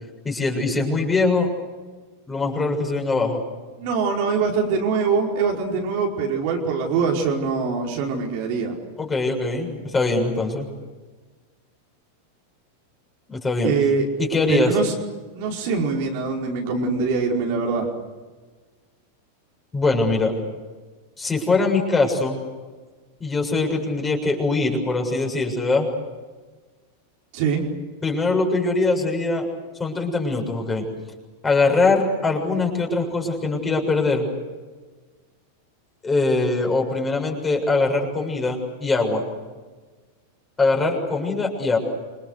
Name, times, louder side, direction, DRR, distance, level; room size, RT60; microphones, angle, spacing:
voice 1, 0.2-1.5 2.3-3.4 9.0-10.7 13.3-13.7 14.2-14.7 19.7-20.3 21.2-22.4 23.2-25.9 28.0-29.5 29.8-30.9 31.4-34.3 36.0-39.2 40.6-41.8, left 3 dB, 15° left, 2 dB, 7.0 m, -22 dB
voice 2, 3.8-8.7 13.6-14.0 14.5-14.9 15.3-17.9 27.3-27.6, right 5 dB, 45° right, 0 dB, 5.1 m, -23 dB
29.5 x 26.5 x 6.6 m, 1.4 s
figure-of-eight pair, 90°, 0 cm